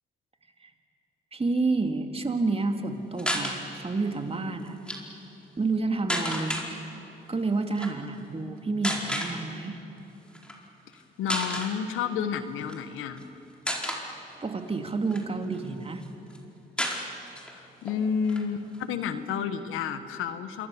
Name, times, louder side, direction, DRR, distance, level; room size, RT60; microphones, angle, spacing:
voice 1, 1.3-4.8 5.6-6.9 7.3-9.8 14.4-16.1, right 3 dB, 30° right, 5 dB, 2.6 m, -29 dB
sound 1, 3.2-3.6 4.7-5.0 6.1-6.7 7.7-7.9 8.8-9.3 10.3-10.5 10.9-11.0 11.3-11.7 12.6-13.2 13.7-14.0 14.7-15.7 16.0-16.1 16.3-16.4 16.8-17.5 17.9-18.0 18.2-19.3, equal, 5° left, 4.6 m, -31 dB
voice 2, 10.9-13.2 17.5-20.7, left 7 dB, 80° left, 10 dB, 1.3 m, -31 dB
27.0 x 23.0 x 7.1 m, 3.0 s
supercardioid pair, 60°, 20 cm